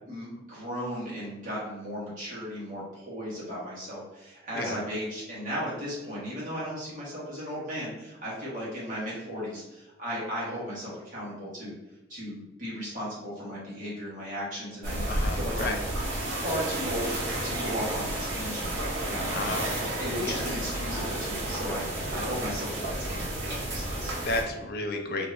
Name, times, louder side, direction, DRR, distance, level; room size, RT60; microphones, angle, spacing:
voice 1, 0.1-11.7 12.1-15.1 15.3-15.7 16.3-19.5 19.9-24.1, equal, 45° right, -7 dB, 1.3 m, -36 dB
sound 1, 14.8-24.4, right 1 dB, 80° right, 0.9 m, -31 dB
voice 2, 15.1-15.8 19.3-19.7 20.2-20.4 24.2-25.3, left 2 dB, 50° left, 3 dB, 0.4 m, -32 dB
2.7 x 2.5 x 3.1 m, 1.1 s
head